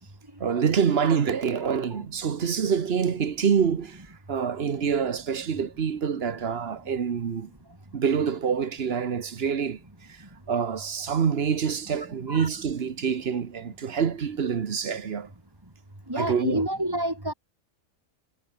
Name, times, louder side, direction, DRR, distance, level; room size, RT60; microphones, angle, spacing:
voice 1, 0.4-4.0 4.3-7.5 7.9-9.8 10.1-15.3 16.1-16.7, right 7 dB, 50° right, 1.2 m, -26 dB
voice 2, 16.1-17.3, right 1 dB, 15° right, 3.6 m, -28 dB
omnidirectional pair, 1.4 m